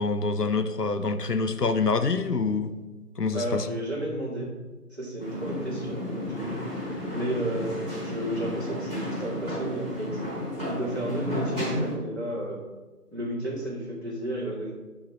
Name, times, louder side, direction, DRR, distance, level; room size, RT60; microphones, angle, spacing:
voice 1, 0.0-2.7 3.2-3.7, left 4 dB, 80° left, 10 dB, 0.8 m, -26 dB
voice 2, 3.3-4.5 4.9-6.6 7.1-10.2 10.7-12.6 13.1-14.7, right 1 dB, 45° right, -4 dB, 2.5 m, -32 dB
sound 1, 5.2-11.9, left 1 dB, 5° right, 2.8 m, -33 dB
6.5 x 5.6 x 6.0 m, 1.2 s
figure-of-eight pair, 165°, 47 cm